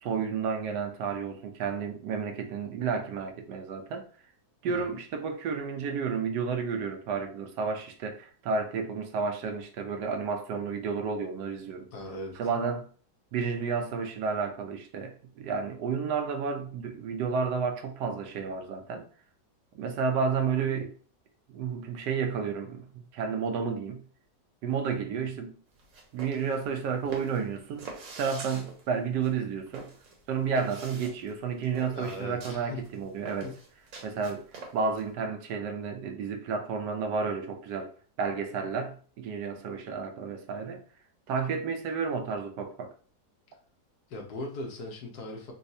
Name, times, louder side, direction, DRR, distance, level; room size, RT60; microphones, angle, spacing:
voice 1, 0.0-4.1 4.6-11.9 12.4-12.9 13.3-19.1 19.7-20.9 21.5-22.9 23.1-24.0 24.6-25.6 26.1-27.9 28.2-29.9 30.3-33.5 34.0-34.4 34.7-37.9 38.2-40.8 41.3-42.9, right 5 dB, 85° right, 1.2 m, -31 dB
voice 2, 11.9-12.4 31.9-32.8 33.4-33.6 44.1-45.5, left 2 dB, 75° left, 1.4 m, -39 dB
sound 1, 25.7-35.0, right 4 dB, 60° right, 1.2 m, -45 dB
4.1 x 2.3 x 2.6 m
omnidirectional pair, 1.8 m